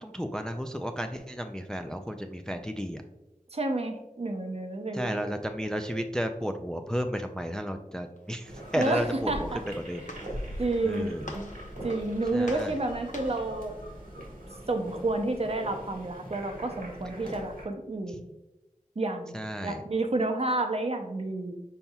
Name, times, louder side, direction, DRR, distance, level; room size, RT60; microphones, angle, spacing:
voice 1, 0.0-3.0 4.9-9.5 9.9-10.0 10.8-11.3 12.3-12.8 19.3-19.8, equal, 5° left, 6 dB, 0.3 m, -33 dB
voice 2, 3.5-5.4 8.7-9.6 10.6-11.1 11.3-11.5 11.8-13.8 14.7-18.3 19.0-21.6, right 2 dB, 45° right, 5 dB, 0.6 m, -30 dB
Walk footsteps, 8.2-13.5, left 1 dB, 65° left, 0.7 m, -42 dB
sound 1, 8.4-17.7, right 1 dB, 85° right, 1.5 m, -44 dB
5.5 x 4.1 x 2.3 m, 0.98 s
wide cardioid pair, 55°, 14 cm